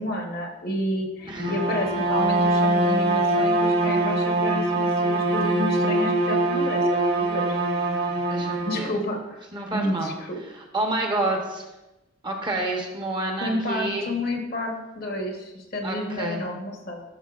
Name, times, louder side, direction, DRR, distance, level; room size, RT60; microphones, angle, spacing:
voice 1, 0.0-7.5 8.7-9.4 9.7-10.4 13.4-17.0, left 1 dB, 45° left, 2 dB, 1.0 m, -30 dB
Bowed string instrument, 1.3-8.9, right 2 dB, 50° right, 1.2 m, -23 dB
voice 2, 8.3-8.9 9.5-10.1 10.5-11.7 12.2-14.1 15.8-16.4, right 2 dB, 20° right, 1 dB, 0.8 m, -28 dB
12.0 x 5.4 x 2.4 m, 1.0 s
head